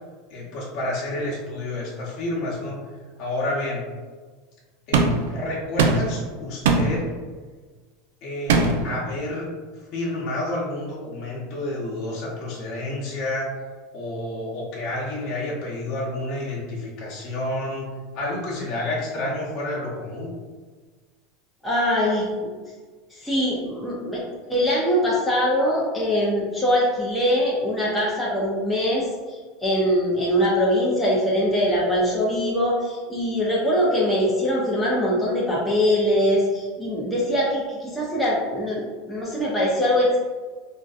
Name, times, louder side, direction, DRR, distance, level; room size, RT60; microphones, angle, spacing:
voice 1, 0.3-2.8 3.2-3.8 4.9-7.0 8.2-9.5 9.9-13.5 13.9-17.9 18.1-20.3, left 1 dB, 45° left, -5 dB, 1.0 m, -29 dB
sound 1, 4.9-5.3 5.8-6.2 6.6-7.0 8.5-8.9, right 3 dB, 85° right, 0.4 m, -19 dB
voice 2, 21.6-22.5 23.1-24.2 24.5-40.2, equal, 5° left, -6 dB, 0.6 m, -22 dB
3.6 x 2.6 x 2.4 m, 1.4 s
supercardioid pair, 145°, 0 cm